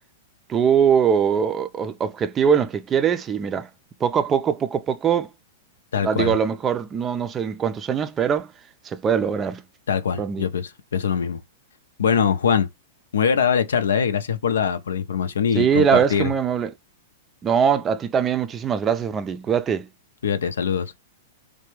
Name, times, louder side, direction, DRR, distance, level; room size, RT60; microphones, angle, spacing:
voice 1, 0.5-3.7 4.0-5.3 6.0-8.5 8.8-9.6 10.2-10.5 15.5-16.7 17.4-19.9, right 7 dB, 25° right, 0.4 m, -22 dB
voice 2, 5.9-6.4 9.9-11.4 12.0-12.7 13.1-16.3 20.2-20.9, left 7 dB, 85° left, 0.6 m, -22 dB
3.3 x 2.2 x 3.1 m
hypercardioid pair, 125°, 0 cm